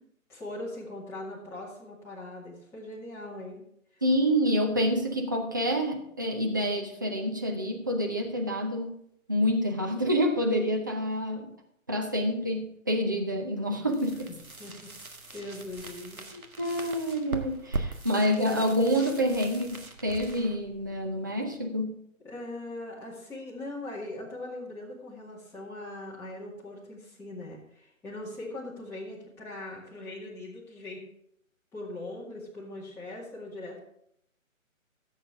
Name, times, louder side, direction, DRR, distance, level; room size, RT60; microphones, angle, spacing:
voice 1, 0.3-3.6 3.9-4.0 14.3-14.9 15.3-16.2 22.2-31.0 31.7-33.8, left 2 dB, 5° left, -7 dB, 2.2 m, -40 dB
voice 2, 4.0-9.0 9.3-11.5 11.9-14.3 16.3-22.0, equal, 15° right, 2 dB, 0.5 m, -27 dB
sound 1, 13.9-21.6, right 2 dB, 85° right, 1.7 m, -40 dB
15.0 x 8.2 x 3.6 m, 0.73 s
figure-of-eight pair, 145°, 41 cm